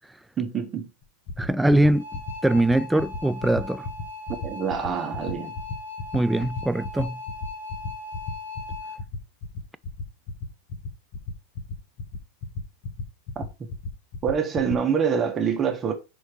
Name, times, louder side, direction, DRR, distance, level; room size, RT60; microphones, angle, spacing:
voice 1, 0.4-0.9 4.4-5.5 13.3-13.4 14.2-15.9, right 7 dB, 25° right, 1.4 m, -25 dB
sound 1, 1.0-14.7, left 3 dB, 45° left, 1.5 m, -33 dB
voice 2, 1.4-3.9 6.1-7.2, right 1 dB, 5° right, 0.4 m, -22 dB
sound 2, 1.8-9.0, left 3 dB, 90° left, 1.9 m, -39 dB
6.3 x 4.6 x 4.6 m
figure-of-eight pair, 90°, 0 cm